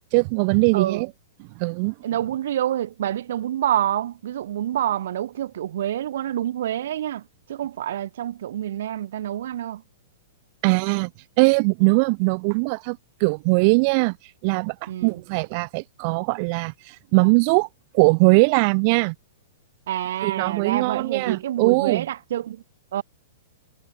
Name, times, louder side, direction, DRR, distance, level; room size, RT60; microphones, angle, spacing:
voice 1, 0.1-1.1 1.4-1.9 10.6-11.1 11.4-14.2 14.4-17.7 17.9-19.1 20.2-22.0, right 33 dB, 45° right, 1.1 m, -21 dB
voice 2, 0.7-1.0 2.0-7.2 7.5-9.8 14.9-15.2 19.9-22.6 22.9-23.0, right 11 dB, 65° right, 5.0 m, -27 dB
figure-of-eight pair, 110°, 0 cm